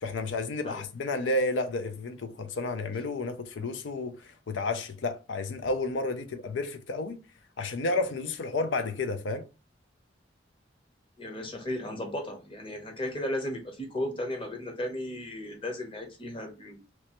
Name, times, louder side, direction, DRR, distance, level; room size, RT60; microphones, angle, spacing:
voice 1, 0.0-7.2 7.6-9.5, left 2 dB, 85° left, 0.4 m, -31 dB
voice 2, 11.2-16.8, left 1 dB, 30° left, 0.9 m, -35 dB
3.2 x 3.0 x 2.9 m
head